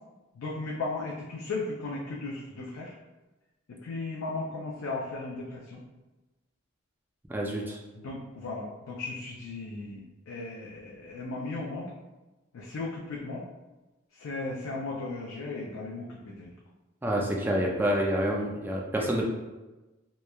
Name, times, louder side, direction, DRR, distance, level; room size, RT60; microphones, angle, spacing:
voice 1, 0.4-2.9 3.7-5.8 8.0-10.0 10.3-11.9 12.5-13.4 14.2-16.5 19.0-19.1, left 3 dB, 90° left, -4 dB, 0.4 m, -36 dB
voice 2, 7.3-7.8 17.0-19.2, equal, 10° right, -1 dB, 0.3 m, -28 dB
3.0 x 2.1 x 2.2 m, 1.1 s
head